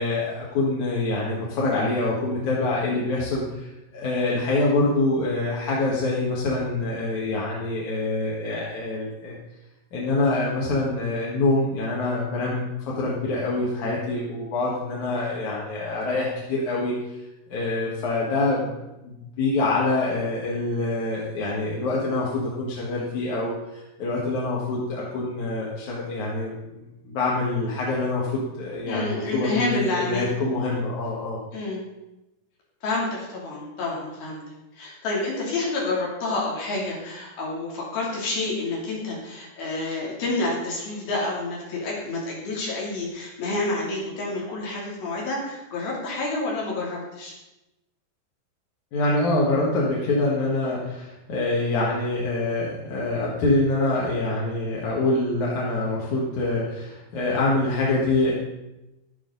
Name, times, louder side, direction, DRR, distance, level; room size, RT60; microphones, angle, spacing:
voice 1, 0.0-9.4 9.9-16.9 17.5-18.7 19.0-31.4 48.9-58.3, left 2 dB, 60° left, -5 dB, 2.8 m, -25 dB
voice 2, 28.9-30.3 31.5-31.8 32.8-34.4 34.8-47.3, left 2 dB, 80° left, -4 dB, 4.8 m, -29 dB
12.0 x 12.0 x 3.9 m, 0.97 s
omnidirectional pair, 4.2 m